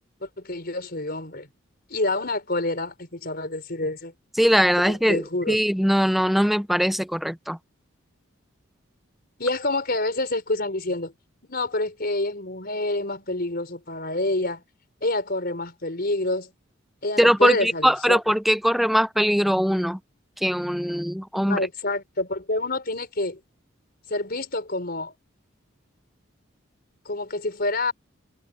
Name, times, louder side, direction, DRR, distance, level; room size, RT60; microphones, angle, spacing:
voice 1, 0.2-1.5 1.9-4.1 4.8-5.6 9.4-11.1 11.5-14.6 15.0-16.5 17.0-18.2 21.5-23.4 24.1-25.1 27.0-27.9, left 2 dB, 50° left, 5.0 m, -27 dB
voice 2, 4.4-7.6 17.2-20.0 20.4-21.6, equal, ahead, 0.6 m, -21 dB
head